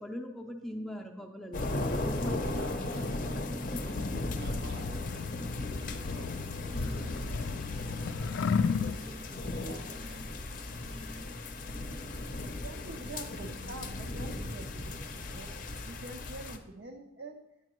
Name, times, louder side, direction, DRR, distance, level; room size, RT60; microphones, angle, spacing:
voice 1, 0.0-2.3 3.5-3.8, equal, ahead, 1 dB, 0.5 m, -41 dB
sound 1, 1.5-16.6, left 2 dB, 45° left, 0.6 m, -36 dB
voice 2, 2.0-3.4 3.7-5.4 5.7-8.0 8.4-10.7, right 1 dB, 80° right, 3 dB, 1.6 m, -50 dB
sound 2, 3.9-9.0, left 5 dB, 80° left, 0.3 m, -34 dB
sound 3, 6.6-7.3 7.7-8.2 8.7-9.3 9.7-10.3 10.8-11.2, equal, 30° right, 0.7 m, -50 dB
voice 3, 12.6-15.5 15.8-17.4, right 2 dB, 65° right, 3 dB, 0.6 m, -46 dB
9.6 x 7.4 x 3.0 m, 0.89 s
head